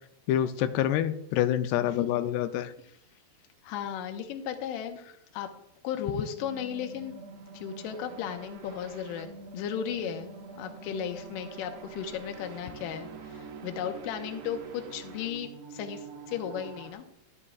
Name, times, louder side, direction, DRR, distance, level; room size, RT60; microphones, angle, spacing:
voice 1, 0.3-2.7, left 11 dB, 90° left, 10 dB, 2.6 m, -27 dB
voice 2, 3.6-5.0 5.3-5.5 5.8-7.2 7.5-9.3 9.5-10.3 10.6-17.0, left 8 dB, 75° left, 5 dB, 2.2 m, -35 dB
sound 1, 6.4-16.9, right 5 dB, 75° right, 2.9 m, -45 dB
12.0 x 9.8 x 2.4 m, 0.78 s
omnidirectional pair, 4.6 m